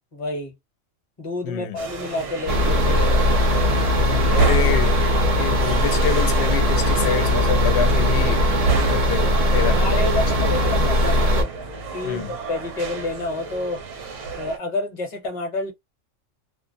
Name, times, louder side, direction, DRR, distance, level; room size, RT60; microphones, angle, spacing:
voice 1, 0.1-0.5 1.2-3.3 9.7-11.5 11.9-13.8 14.4-15.7, left 2 dB, 30° left, 0.7 m, -29 dB
voice 2, 1.4-1.8 4.0-10.5 12.0-12.3, left 8 dB, 65° left, 0.8 m, -28 dB
sound 1, 1.8-14.6, right 4 dB, 70° right, 1.0 m, -30 dB
sound 2, 2.5-11.4, left 1 dB, 45° right, 0.5 m, -19 dB
2.4 x 2.0 x 2.6 m
omnidirectional pair, 1.3 m